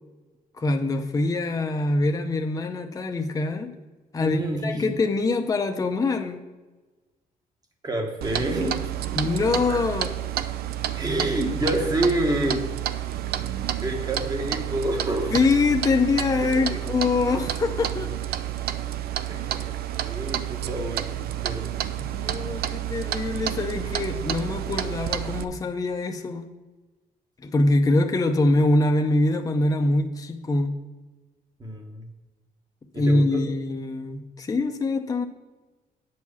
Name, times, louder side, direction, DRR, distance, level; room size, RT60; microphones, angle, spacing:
voice 1, 0.5-3.7 4.1-6.4 9.2-10.1 15.3-18.1 22.0-26.5 27.4-30.7 32.9-35.3, left 2 dB, 20° left, 4 dB, 0.7 m, -24 dB
voice 2, 4.2-4.9 7.8-9.1 10.9-12.6 13.8-15.3 16.6-16.8 19.3-21.8 31.6-32.1 32.9-33.4, right 1 dB, 25° right, 3 dB, 1.4 m, -28 dB
Clock, 8.2-25.4, right 11 dB, 80° right, 0.5 m, -30 dB
9.4 x 4.7 x 7.1 m, 1.2 s
cardioid pair, 135°, 16 cm